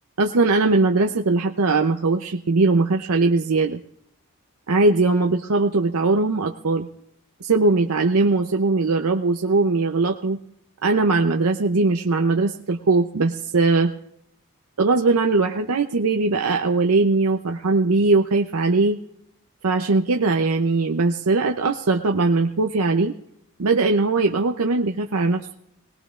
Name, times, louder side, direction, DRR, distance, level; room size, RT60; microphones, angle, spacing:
voice 1, 0.2-3.8 4.7-6.9 7.4-10.4 10.8-13.9 14.8-19.0 19.6-23.1 23.6-25.5, right 3 dB, 90° right, 3 dB, 0.7 m, -20 dB
22.5 x 18.5 x 2.5 m, 0.75 s
head